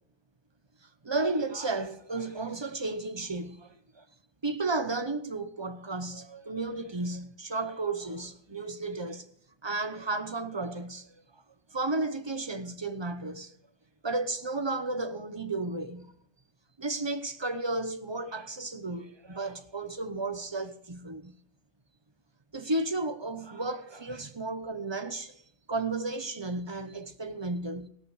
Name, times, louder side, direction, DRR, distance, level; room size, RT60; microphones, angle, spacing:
voice 1, 1.0-4.0 4.4-9.3 9.6-11.1 11.7-13.6 14.0-16.1 16.8-21.4 22.5-25.4 25.7-27.9, right 2 dB, 25° right, 0.7 m, -33 dB
16.5 x 13.5 x 3.2 m
omnidirectional pair, 1.5 m